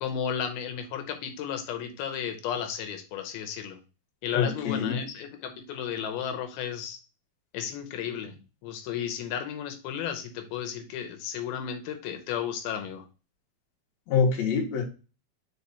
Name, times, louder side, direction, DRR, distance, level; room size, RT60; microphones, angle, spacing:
voice 1, 0.0-3.8 4.2-7.0 7.5-8.3 8.6-13.0, left 8 dB, 90° left, 6 dB, 2.7 m, -33 dB
voice 2, 4.3-5.1 14.1-14.8, left 6 dB, 55° left, 0 dB, 2.3 m, -25 dB
4.8 x 4.8 x 4.0 m, 0.33 s
omnidirectional pair, 4.3 m